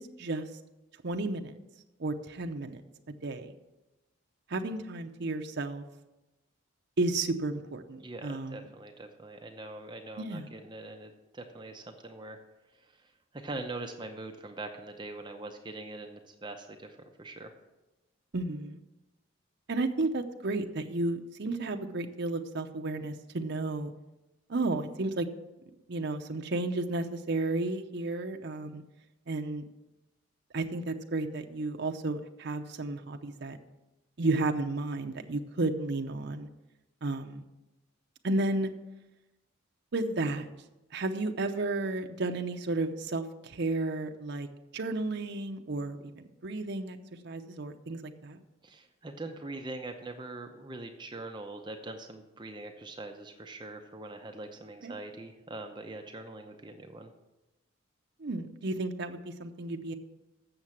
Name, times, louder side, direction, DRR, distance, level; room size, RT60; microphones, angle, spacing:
voice 1, 1.0-1.5 2.0-2.8 3.2-3.5 4.5-5.8 7.0-8.7 10.2-10.5 18.3-18.8 19.7-23.9 24.5-25.3 25.9-28.8 29.3-29.6 30.5-33.6 34.2-36.5 37.0-37.4 38.2-38.7 39.9-40.5 40.9-44.5 44.7-47.0 47.2-48.4 54.8-54.9 58.2-59.9, right 2 dB, 55° right, 5 dB, 0.7 m, -32 dB
voice 2, 8.0-12.4 13.3-17.5 48.6-57.1, right 2 dB, 20° right, 4 dB, 0.7 m, -42 dB
7.9 x 6.6 x 7.3 m, 1.0 s
head